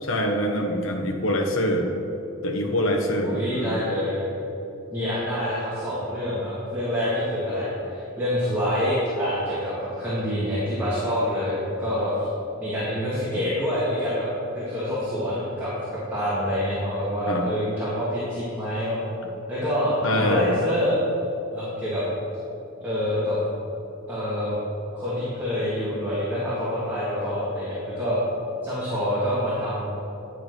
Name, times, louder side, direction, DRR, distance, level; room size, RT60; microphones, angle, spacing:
voice 1, 0.0-1.9 2.4-3.8 17.3-17.5 20.0-20.5, equal, 75° left, 2 dB, 1.2 m, -24 dB
voice 2, 3.2-4.3 4.9-12.1 12.6-14.3 14.5-19.0 19.5-21.0 21.5-22.0 22.8-23.4 24.1-24.6 24.9-28.2 28.6-29.8, equal, 10° right, -10 dB, 2.1 m, -26 dB
10.5 x 4.9 x 6.0 m, 2.9 s
head